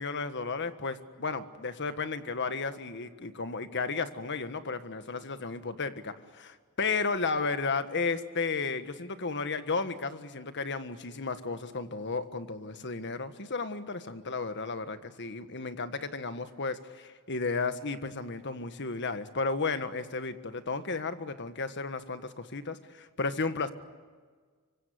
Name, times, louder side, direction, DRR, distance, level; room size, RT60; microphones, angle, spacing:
voice 1, 0.0-23.7, left 4 dB, 55° left, 10 dB, 1.5 m, -33 dB
26.0 x 24.5 x 8.2 m, 1.5 s
head